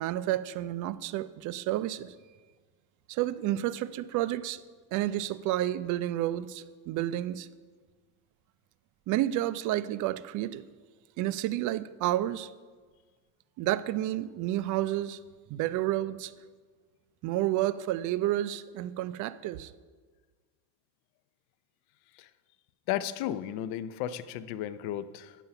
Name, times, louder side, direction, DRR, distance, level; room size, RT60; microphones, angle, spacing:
voice 1, 0.0-2.1 3.1-4.6 4.9-7.5 9.1-10.6 11.2-12.5 13.6-15.2 15.5-16.3 17.2-19.7, right 14 dB, 45° right, 14 dB, 0.4 m, -30 dB
voice 2, 22.9-25.4, left 11 dB, 55° left, 13 dB, 0.6 m, -34 dB
9.1 x 7.1 x 5.7 m, 1.5 s
supercardioid pair, 120°, 45 cm